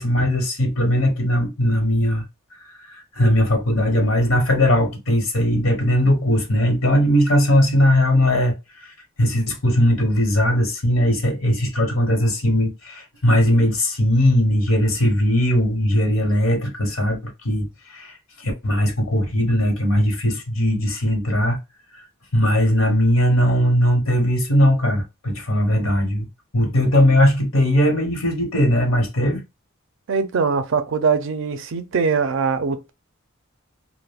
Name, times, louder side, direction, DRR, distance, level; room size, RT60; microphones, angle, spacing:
voice 1, 0.0-2.2 2.8-8.5 8.8-21.6 22.3-26.3 26.5-29.4, equal, 75° left, 0.9 m, -19 dB
voice 2, 30.1-32.9, right 5 dB, 65° right, 0.4 m, -22 dB
2.4 x 2.1 x 3.4 m
head